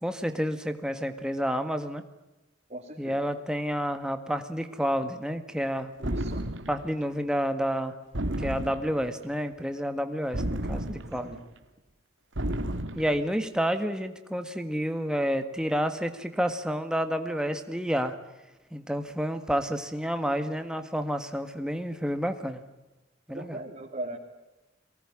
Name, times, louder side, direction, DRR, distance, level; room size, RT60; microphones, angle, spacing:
voice 1, 0.0-2.0 3.0-5.9 6.7-8.0 8.4-11.3 12.9-18.1 18.7-22.6 23.3-23.6, equal, 5° right, 8 dB, 1.7 m, -29 dB
voice 2, 2.7-3.2 6.0-6.5 11.2-11.4 23.3-24.2, right 1 dB, 35° right, -2 dB, 3.0 m, -39 dB
sound 1, 6.0-6.9 8.1-9.1 10.3-11.4 12.4-13.2, right 1 dB, 70° right, 1.9 m, -32 dB
23.0 x 19.0 x 10.0 m, 1.0 s
head